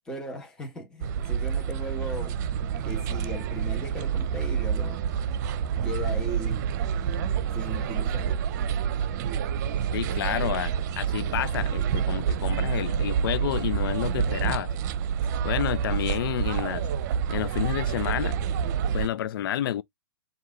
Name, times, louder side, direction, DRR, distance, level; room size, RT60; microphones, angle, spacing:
voice 1, 0.0-2.4 2.8-5.0 5.8-6.6 7.5-8.4, equal, 5° left, 1.6 m, -37 dB
sound 1, 1.0-19.1, right 8 dB, 45° right, 0.8 m, -28 dB
voice 2, 9.9-14.7 15.4-16.9 17.3-18.4 18.9-19.8, left 12 dB, 60° left, 0.4 m, -29 dB
4.6 x 2.7 x 3.8 m
hypercardioid pair, 135°, 13 cm